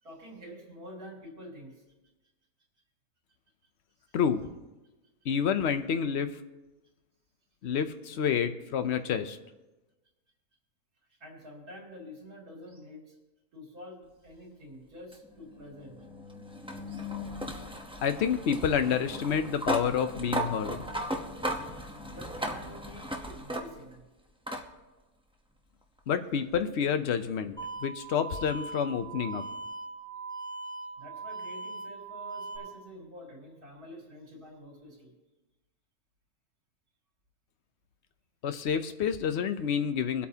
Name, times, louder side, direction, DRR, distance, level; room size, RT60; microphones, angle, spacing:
voice 1, 0.0-1.8 11.1-13.2 13.5-16.1 16.8-17.1 22.1-24.0 31.0-35.1, equal, 80° right, -2 dB, 3.4 m, -48 dB
voice 2, 5.2-6.4 7.6-9.4 18.0-20.8 26.1-27.5 27.8-29.4 38.4-40.3, left 7 dB, 55° left, 9 dB, 0.9 m, -28 dB
sound 1, 15.1-24.0 24.5-24.7 26.0-26.1 29.0-29.1, equal, 5° right, 0.6 m, -36 dB
sound 2, 27.6-32.6, right 3 dB, 35° left, 4.2 m, -40 dB
24.5 x 8.4 x 2.8 m, 1.1 s
omnidirectional pair, 1.6 m